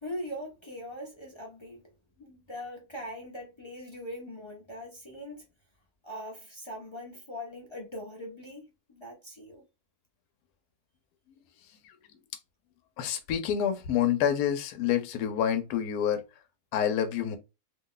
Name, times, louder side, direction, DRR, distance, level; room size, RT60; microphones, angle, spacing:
voice 1, 0.0-1.8 2.2-5.5 6.0-9.6, equal, 30° left, 0.5 m, -41 dB
voice 2, 13.0-16.2 16.7-17.4, left 9 dB, 80° left, 1.1 m, -27 dB
2.7 x 2.2 x 3.7 m
omnidirectional pair, 1.7 m